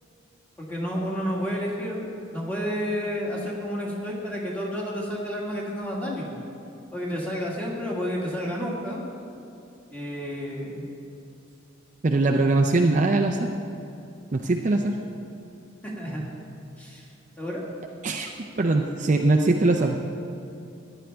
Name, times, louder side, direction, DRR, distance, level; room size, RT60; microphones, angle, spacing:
voice 1, 0.6-6.3 6.9-9.0 9.9-10.9 15.8-16.3 16.8-17.1 17.4-17.6, equal, 5° left, -4 dB, 1.7 m, -30 dB
voice 2, 12.0-13.5 14.3-14.9 18.0-18.3 18.6-20.0, right 2 dB, 35° right, 3 dB, 0.4 m, -21 dB
14.5 x 10.0 x 3.4 m, 2.8 s
head